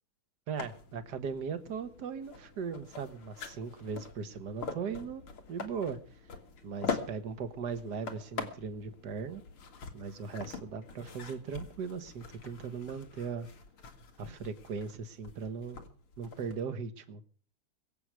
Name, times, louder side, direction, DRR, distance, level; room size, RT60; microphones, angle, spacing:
voice 1, 0.5-5.2 5.5-6.0 6.6-9.4 9.9-13.5 14.2-15.8 16.2-17.2, right 6 dB, 55° right, 11 dB, 1.9 m, -38 dB
sound 1, 0.6-16.6, left 5 dB, 85° left, 2.9 m, -44 dB
23.0 x 8.1 x 6.3 m, 0.42 s
omnidirectional pair, 2.3 m